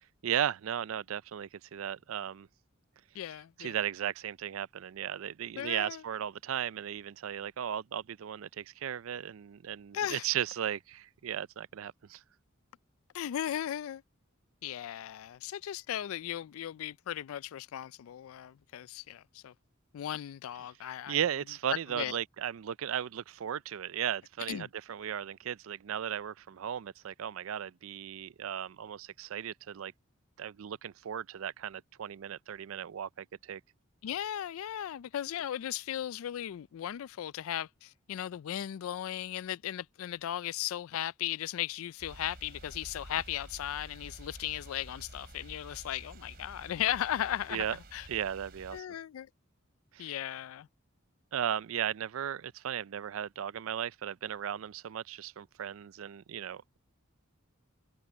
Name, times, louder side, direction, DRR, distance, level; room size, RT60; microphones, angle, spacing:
voice 1, 0.2-2.5 3.6-12.2 21.1-29.9 30.4-33.6 47.5-47.8 48.1-48.9 49.9-50.1 51.3-56.8, right 9 dB, 70° right, 0.4 m, -36 dB
voice 2, 3.1-3.8 5.6-6.0 9.9-10.3 13.1-14.0 14.6-19.5 19.9-21.2 21.7-22.2 24.5-24.7 34.0-48.1 48.7-49.3 50.0-50.7, left 11 dB, 80° left, 0.3 m, -36 dB
sound 1, 42.0-48.8, right 1 dB, 50° right, 3.6 m, -50 dB
head